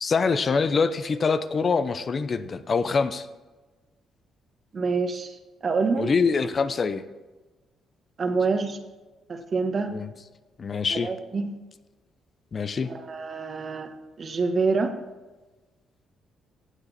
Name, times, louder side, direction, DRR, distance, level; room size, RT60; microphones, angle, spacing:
voice 1, 0.0-3.3 6.0-7.0 9.9-10.1 10.6-11.1 12.5-12.9, left 5 dB, 40° left, 12 dB, 0.7 m, -24 dB
voice 2, 4.7-6.1 8.2-8.8 9.3-9.9 10.9-11.5 12.9-13.9 14.2-14.9, right 4 dB, 45° right, 6 dB, 1.5 m, -26 dB
16.5 x 8.1 x 4.3 m, 1.2 s
cardioid pair, 90°, 0 cm